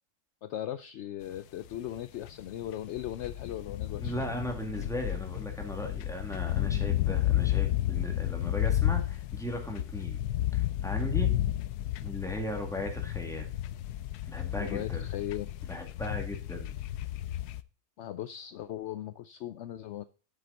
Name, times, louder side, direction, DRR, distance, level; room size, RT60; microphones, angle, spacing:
voice 1, 0.4-4.1 14.6-15.5 18.0-20.0, left 12 dB, 70° left, 13 dB, 0.7 m, -38 dB
sound 1, 1.4-1.5 1.7-17.6, left 13 dB, 85° left, 1.1 m, -32 dB
voice 2, 4.0-10.2 10.5-11.3 12.0-13.5 14.3-15.1 15.7-16.7, equal, ahead, 2 dB, 1.9 m, -37 dB
7.6 x 7.5 x 3.8 m, 0.37 s
omnidirectional pair, 1.6 m